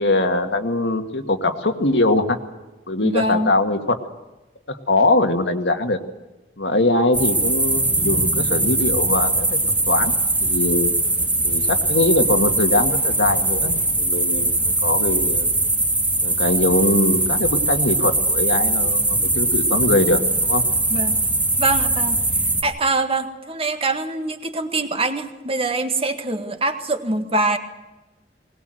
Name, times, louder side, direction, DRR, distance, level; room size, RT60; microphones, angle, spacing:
voice 1, 0.0-2.4 2.9-4.0 4.7-6.0 6.6-9.6 9.9-10.1 10.4-10.9 11.4-15.5 16.2-20.6, left 2 dB, 80° left, 5 dB, 2.1 m, -21 dB
voice 2, 3.0-3.5 20.9-21.2 21.6-27.6, right 2 dB, 35° right, 7 dB, 1.8 m, -24 dB
sound 1, 7.1-22.6, right 2 dB, 10° right, 2.7 m, -21 dB
20.5 x 19.5 x 7.9 m, 1.1 s
head